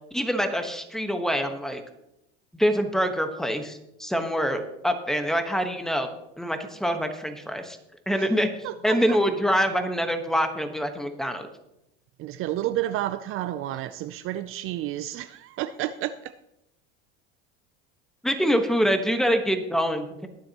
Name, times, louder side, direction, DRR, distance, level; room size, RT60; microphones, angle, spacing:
voice 1, 0.1-1.8 2.5-6.1 6.4-7.8 8.1-8.5 8.8-11.5 18.2-20.3, equal, ahead, 6 dB, 1.2 m, -25 dB
voice 2, 8.6-9.2 12.2-16.3, right 13 dB, 45° right, 12 dB, 0.5 m, -31 dB
22.0 x 7.6 x 3.0 m, 0.85 s
supercardioid pair, 125°, 30 cm